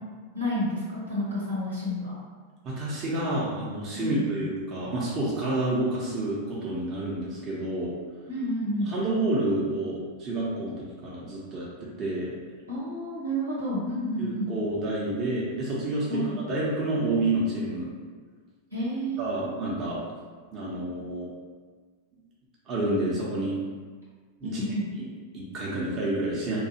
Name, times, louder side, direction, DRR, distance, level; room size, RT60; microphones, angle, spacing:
voice 1, 0.3-2.2 3.9-4.2 8.3-8.9 12.7-14.5 16.1-16.4 18.7-19.4 24.4-24.9, equal, 85° right, -8 dB, 1.0 m, -30 dB
voice 2, 2.6-7.9 8.8-12.3 14.2-16.2 16.5-17.9 19.2-20.0 20.5-21.3 22.7-23.6 24.4-24.6 25.0-26.7, right 2 dB, 30° right, -6 dB, 0.6 m, -29 dB
2.6 x 2.3 x 2.8 m, 1.5 s
figure-of-eight pair, 90°, 0 cm